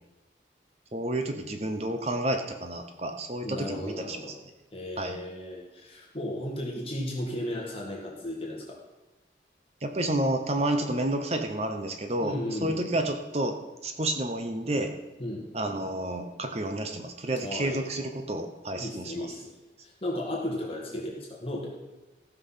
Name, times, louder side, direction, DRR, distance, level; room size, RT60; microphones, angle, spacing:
voice 1, 0.9-4.2 5.0-5.2 9.8-13.6 13.8-14.9 15.5-19.3, right 1 dB, 35° right, 6 dB, 0.8 m, -30 dB
voice 2, 3.4-4.3 4.7-8.8 12.2-12.9 15.2-15.5 17.4-17.8 18.8-21.7, left 1 dB, 30° left, -3 dB, 2.0 m, -35 dB
15.5 x 6.1 x 5.7 m, 1.1 s
head